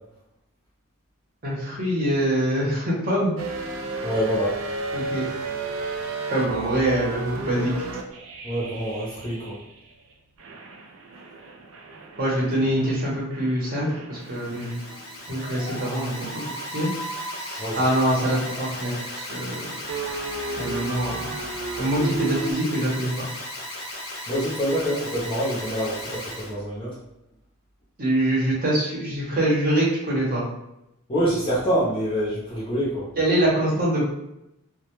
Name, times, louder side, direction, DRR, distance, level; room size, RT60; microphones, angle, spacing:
voice 1, 1.4-3.3 4.9-5.2 6.3-7.7 12.2-14.7 15.3-16.3 16.7-16.9 17.3-19.8 20.6-21.3 21.8-23.3 28.0-30.5 33.2-34.1, right 1 dB, 40° right, -5 dB, 0.7 m, -24 dB
sound 1, 3.4-9.9 10.4-22.5, right 3 dB, 65° right, 0.4 m, -34 dB
voice 2, 4.0-4.6 8.4-9.6 17.6-17.9 24.3-27.0 31.1-33.1, equal, 25° left, -7 dB, 0.6 m, -26 dB
Alarm, 14.2-26.5, left 1 dB, 85° left, 0.9 m, -36 dB
2.1 x 2.1 x 2.9 m, 0.87 s
head